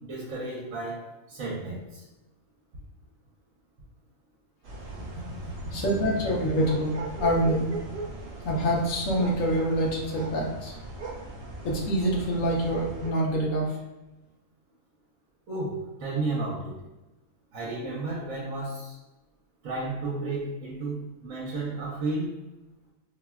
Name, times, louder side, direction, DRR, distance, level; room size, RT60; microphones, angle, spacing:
voice 1, 0.0-2.0 5.7-5.9 15.5-16.8 17.5-18.9 19.6-22.3, right 2 dB, 75° right, -4 dB, 1.1 m, -33 dB
sound 1, 4.6-13.1, right 2 dB, 60° right, 0.9 m, -38 dB
voice 2, 5.7-7.7 8.4-10.7 11.6-13.8, equal, 75° left, -2 dB, 1.2 m, -26 dB
3.7 x 2.2 x 2.2 m, 1.0 s
omnidirectional pair, 1.4 m